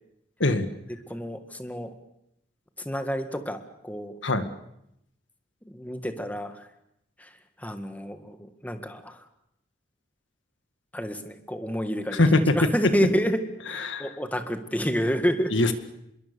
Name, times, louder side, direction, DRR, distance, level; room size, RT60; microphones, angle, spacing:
voice 1, 0.4-0.8 4.2-4.5 12.1-12.7 13.7-14.1 15.5-15.7, left 2 dB, 75° left, 9 dB, 1.9 m, -22 dB
voice 2, 1.1-1.9 2.9-4.1 5.7-6.7 7.2-7.3 7.6-8.4 8.6-9.2 10.9-12.2 12.6-13.4 13.7-15.5, equal, 10° left, 8 dB, 1.8 m, -29 dB
26.0 x 22.0 x 6.9 m, 0.79 s
head